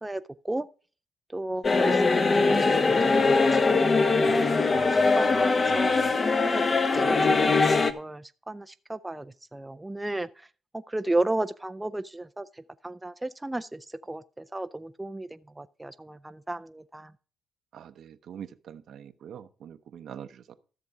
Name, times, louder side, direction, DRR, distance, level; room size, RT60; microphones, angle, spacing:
voice 1, 0.0-0.7 1.3-4.8 5.2-5.9 6.4-6.6 6.9-10.3 10.7-12.5 12.8-13.8 14.1-14.2 14.5-15.3 15.6-17.1, right 2 dB, 10° right, 0.5 m, -34 dB
sound 1, 1.6-7.9, left 3 dB, 35° left, 1.0 m, -22 dB
voice 2, 17.7-20.5, right 9 dB, 65° right, 0.8 m, -44 dB
13.0 x 6.8 x 4.8 m
cardioid pair, 90°, 0 cm